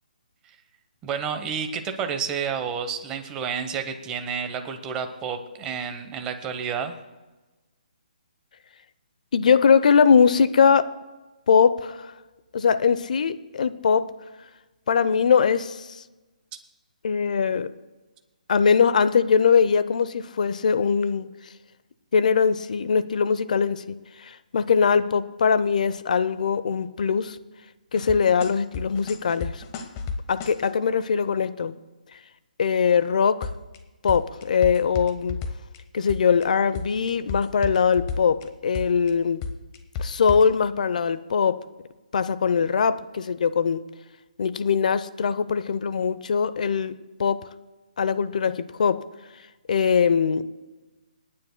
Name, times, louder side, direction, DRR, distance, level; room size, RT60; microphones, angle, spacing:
voice 1, 1.0-7.0, right 6 dB, 15° right, 6 dB, 0.9 m, -30 dB
voice 2, 9.3-10.9 11.5-12.1 12.5-14.1 14.9-16.0 17.0-17.7 18.5-21.3 22.1-27.4 27.9-29.6 30.3-31.8 32.6-33.5 34.0-35.4 35.9-39.4 40.0-41.6 42.1-43.8 44.4-46.9 47.2-47.4 48.0-49.0 49.7-50.5, left 6 dB, 55° left, 14 dB, 0.7 m, -21 dB
sound 1, 28.0-30.7 33.4-33.8 34.1-35.8 36.1-36.4 36.7-38.4 38.7-39.1 39.4-40.5, left 5 dB, 25° left, 0.9 m, -32 dB
28.5 x 9.5 x 2.2 m, 1.2 s
hypercardioid pair, 155°, 5 cm